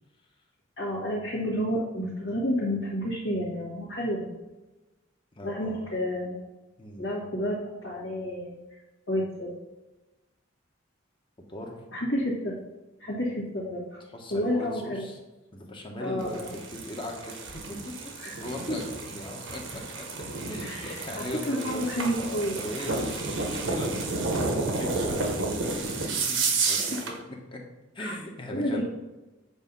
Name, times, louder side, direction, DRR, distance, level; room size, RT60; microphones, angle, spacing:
voice 1, 0.8-4.3 5.4-6.4 7.0-8.5 9.1-9.5 11.9-12.6 13.0-14.0 14.3-15.0 16.0-16.5 18.2-18.4 20.6-22.6 28.0-28.1 28.5-28.8, equal, 70° left, -10 dB, 1.8 m, -30 dB
voice 2, 5.3-5.9 6.8-7.0 11.5-11.8 14.1-15.2 15.5-20.0 20.5-21.8 22.6-27.1 27.5-27.6 27.9-28.8, left 1 dB, 25° left, 0 dB, 1.0 m, -39 dB
sound 1, 16.2-27.2, right 3 dB, 70° right, 1.1 m, -31 dB
8.0 x 2.7 x 5.4 m, 1.1 s
head